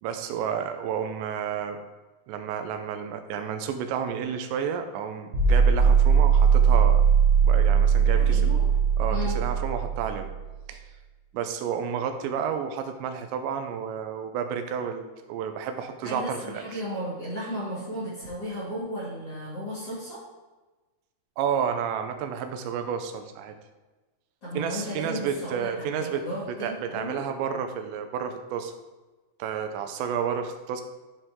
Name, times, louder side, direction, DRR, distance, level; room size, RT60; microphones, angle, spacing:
voice 1, 0.0-1.8 2.3-7.0 7.4-8.5 9.0-10.3 10.7-10.8 11.3-16.6 21.4-23.5 24.5-28.7 29.4-30.8, right 7 dB, 80° right, 6 dB, 2.9 m, -31 dB
sound 1, 5.3-10.4, right 7 dB, 45° right, 3.7 m, -20 dB
voice 2, 8.1-8.7 9.1-9.4 16.0-20.2 24.4-27.2, equal, 35° left, -7 dB, 3.1 m, -34 dB
12.5 x 4.9 x 3.8 m, 1.2 s
omnidirectional pair, 5.4 m